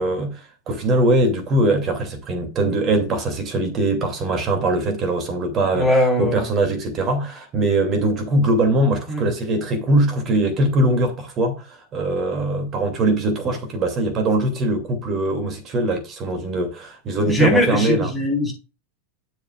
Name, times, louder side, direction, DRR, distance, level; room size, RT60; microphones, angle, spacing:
voice 1, 0.0-18.1, right 2 dB, 30° right, 2.6 m, -21 dB
voice 2, 5.7-6.5 9.1-9.3 17.3-18.5, left 1 dB, 5° left, 4.1 m, -20 dB
12.0 x 7.6 x 2.4 m
figure-of-eight pair, 90°, 0 cm